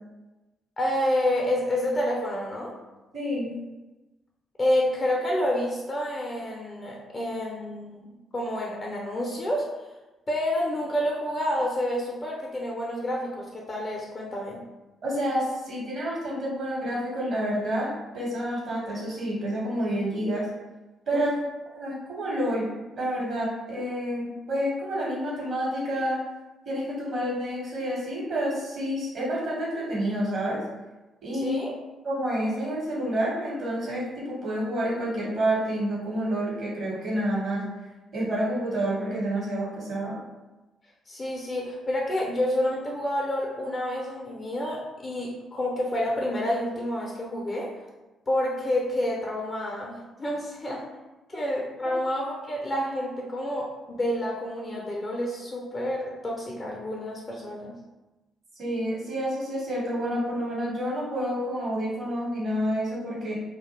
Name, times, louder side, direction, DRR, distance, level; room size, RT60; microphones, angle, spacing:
voice 1, 0.8-2.7 4.6-8.1 8.3-9.7 10.3-14.6 21.1-21.3 31.4-31.7 41.1-47.7 48.3-50.8 51.3-57.7, left 1 dB, 35° left, -2 dB, 0.4 m, -29 dB
voice 2, 3.1-3.5 15.0-17.9 18.1-20.4 21.1-21.3 21.7-22.7 22.9-26.2 26.7-30.6 31.2-31.6 32.0-37.7 38.1-40.2 51.3-51.4 51.8-51.9 58.6-63.3, equal, 50° right, -5 dB, 1.0 m, -29 dB
2.3 x 2.1 x 2.9 m, 1.1 s
figure-of-eight pair, 40°, 0 cm